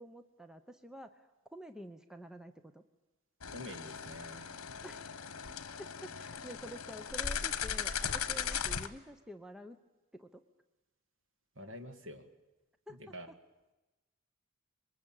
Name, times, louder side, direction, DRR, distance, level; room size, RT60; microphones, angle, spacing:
voice 1, 0.0-2.8 4.8-5.1 5.5-9.8 10.1-10.4 12.9-13.4, right 1 dB, 5° right, 8 dB, 0.8 m, -49 dB
sound 1, 3.4-8.9, left 7 dB, 75° left, 1.2 m, -38 dB
voice 2, 3.5-4.5 11.6-12.3 12.9-13.3, left 1 dB, 60° right, 7 dB, 2.3 m, -47 dB
26.0 x 22.5 x 9.0 m, 1.1 s
head